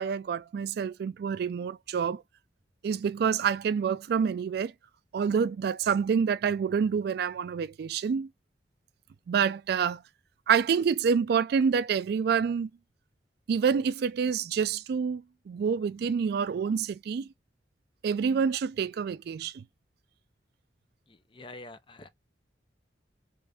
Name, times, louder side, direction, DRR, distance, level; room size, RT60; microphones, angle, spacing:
voice 1, 0.0-2.2 2.8-4.7 5.1-8.3 9.3-10.0 10.5-12.7 13.5-17.3 18.0-19.6, right 6 dB, 60° right, 0.3 m, -27 dB
voice 2, 21.1-22.1, left 2 dB, 30° left, 0.5 m, -46 dB
3.3 x 2.5 x 3.4 m
head